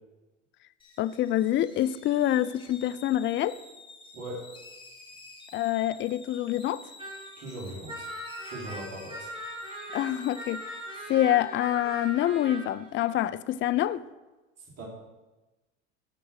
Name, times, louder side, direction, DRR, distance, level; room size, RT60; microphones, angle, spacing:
sound 1, 0.8-13.0, left 2 dB, 15° left, 3.4 m, -51 dB
voice 1, 1.0-3.6 5.5-6.8 9.9-10.6 11.1-14.0, left 12 dB, 30° left, 15 dB, 0.5 m, -26 dB
voice 2, 4.1-4.5 7.4-8.1 8.4-9.4 14.8-14.9, right 1 dB, 40° right, -3 dB, 4.6 m, -39 dB
sound 2, 7.0-7.4 7.7-12.6, equal, 15° right, 3.5 m, -40 dB
14.0 x 5.9 x 6.4 m, 1.1 s
hypercardioid pair, 85°, 38 cm